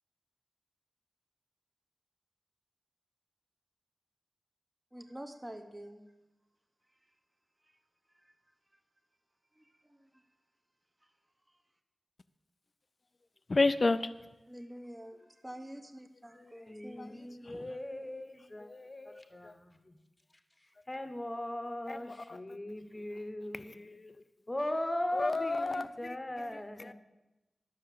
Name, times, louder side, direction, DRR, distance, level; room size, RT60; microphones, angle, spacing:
voice 1, 4.9-6.0 7.0-7.1 7.6-7.8 8.1-8.3 8.7-8.8 9.5-10.3 11.0-11.1 11.5-11.6 14.5-17.5, equal, 15° right, 6 dB, 1.0 m, -48 dB
voice 2, 13.5-14.1 17.0-17.1 17.5-17.7 18.6-19.5 21.9-22.4 23.1-23.3 23.5-24.2 25.1-26.9, left 3 dB, 40° left, 12 dB, 0.4 m, -33 dB
voice 3, 16.7-18.7 19.0-20.0 20.9-23.9 24.5-26.9, left 1 dB, 20° left, 8 dB, 1.0 m, -38 dB
12.0 x 6.4 x 7.4 m, 1.0 s
wide cardioid pair, 115°, 0 cm